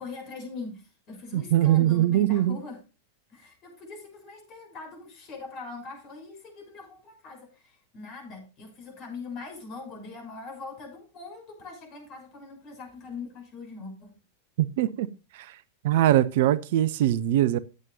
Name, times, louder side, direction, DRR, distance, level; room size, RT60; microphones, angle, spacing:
voice 1, 0.0-2.8 3.3-14.2, left 4 dB, 40° left, 6.6 m, -42 dB
voice 2, 1.3-2.6 14.6-15.1 15.3-15.5 15.8-17.6, right 13 dB, 50° right, 0.5 m, -22 dB
14.5 x 8.9 x 2.7 m
figure-of-eight pair, 90°, 0 cm